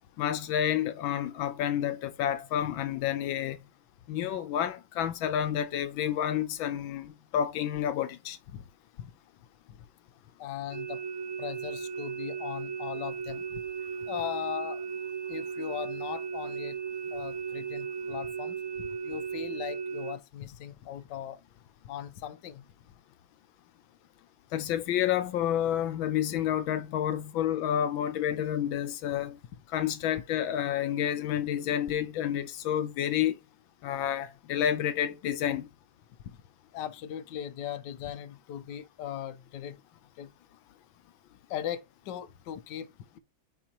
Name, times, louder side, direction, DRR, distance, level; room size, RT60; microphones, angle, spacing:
voice 1, 0.2-3.6 4.1-8.4 24.5-29.4 29.7-33.4 33.8-35.7, left 10 dB, 85° left, 1.5 m, -29 dB
voice 2, 10.4-11.0 11.4-13.6 14.1-14.9 15.3-16.8 17.1-21.4 21.8-22.6 36.3-36.4 36.7-39.8 40.2-40.3 41.5-42.9, left 10 dB, 70° left, 1.3 m, -38 dB
sound 1, 10.7-20.1, right 6 dB, 75° right, 1.6 m, -36 dB
9.9 x 4.2 x 2.9 m
omnidirectional pair, 2.1 m